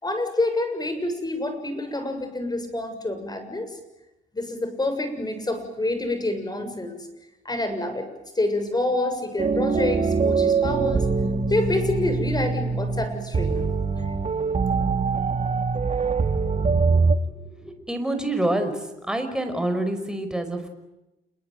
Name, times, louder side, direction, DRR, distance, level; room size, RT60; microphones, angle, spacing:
voice 1, 0.0-3.7 4.3-7.0 7.5-8.1 8.4-11.1 11.5-13.6, left 2 dB, 20° left, 8 dB, 7.2 m, -27 dB
sound 1, 9.4-17.2, right 4 dB, 35° right, 2.1 m, -23 dB
voice 2, 17.6-18.8 19.1-20.7, right 1 dB, 5° right, 6 dB, 5.4 m, -27 dB
28.5 x 22.5 x 9.4 m, 0.95 s
cardioid pair, 90°, 20 cm